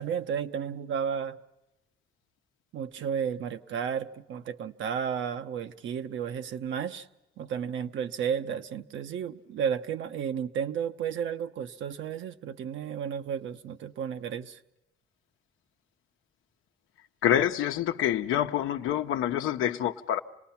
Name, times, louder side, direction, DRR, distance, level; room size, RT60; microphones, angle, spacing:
voice 1, 0.0-1.4 2.7-7.1 7.4-14.6, right 7 dB, 75° right, 0.9 m, -33 dB
voice 2, 17.2-20.2, left 11 dB, 90° left, 0.9 m, -26 dB
27.0 x 19.5 x 5.8 m
cardioid pair, 90°, 20 cm